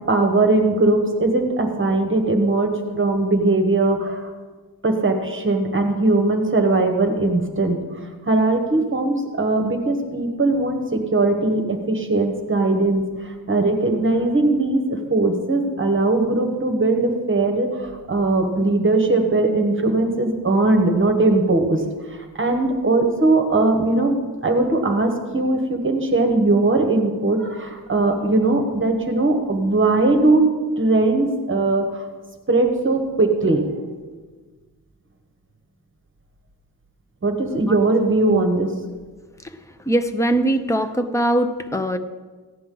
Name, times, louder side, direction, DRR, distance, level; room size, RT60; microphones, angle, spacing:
voice 1, 0.1-4.3 4.8-7.8 8.3-21.8 22.4-24.2 24.4-30.4 30.8-32.0 32.5-33.6 37.2-38.7, right 2 dB, 30° right, 4 dB, 1.3 m, -19 dB
voice 2, 39.9-42.0, right 1 dB, 10° left, 7 dB, 0.6 m, -21 dB
16.0 x 10.0 x 3.9 m, 1.4 s
wide cardioid pair, 165°, 38 cm